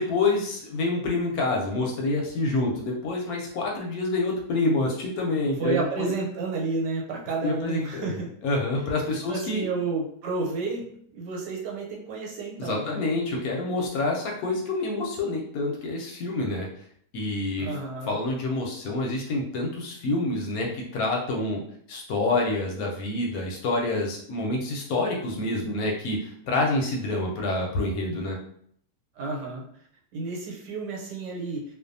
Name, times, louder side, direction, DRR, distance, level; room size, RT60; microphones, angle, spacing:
voice 1, 0.0-6.1 7.4-9.7 12.6-16.7 17.1-17.7 18.1-21.6 21.9-28.4, left 2 dB, 70° left, 0 dB, 0.9 m, -27 dB
voice 2, 5.6-8.3 9.1-13.0 17.6-18.2 29.2-29.7 30.1-31.6, right 4 dB, 85° right, -2 dB, 1.3 m, -31 dB
2.5 x 2.3 x 2.5 m, 0.64 s
omnidirectional pair, 1.8 m